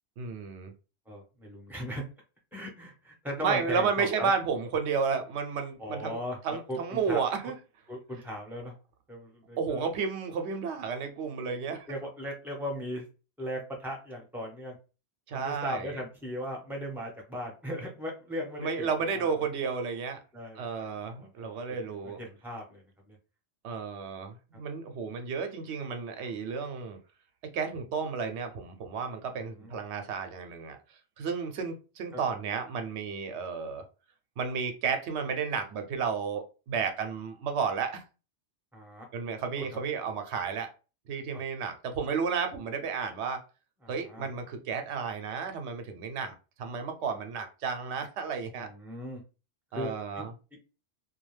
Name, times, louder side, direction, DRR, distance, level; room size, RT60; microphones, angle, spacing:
voice 1, 0.2-0.7 3.4-7.5 9.6-11.9 15.3-16.0 18.6-20.2 20.6-22.2 23.6-27.0 27.5-30.8 31.2-33.8 34.4-38.0 39.1-40.7 41.1-43.4 43.9-48.7 49.7-50.3, right 5 dB, 70° right, 0.9 m, -32 dB
voice 2, 1.1-2.0 2.5-4.3 5.8-7.2 7.9-8.7 9.1-9.8 11.9-13.1 13.4-14.8 15.3-18.9 19.1-19.5 20.3-21.4 21.9-23.2 29.6-29.7 32.1-32.2 38.7-39.1 39.5-39.7 41.3-41.4 43.8-44.3 48.6-49.2 49.7-50.2, equal, ahead, 0.6 m, -38 dB
2.3 x 2.2 x 3.1 m
omnidirectional pair, 1.2 m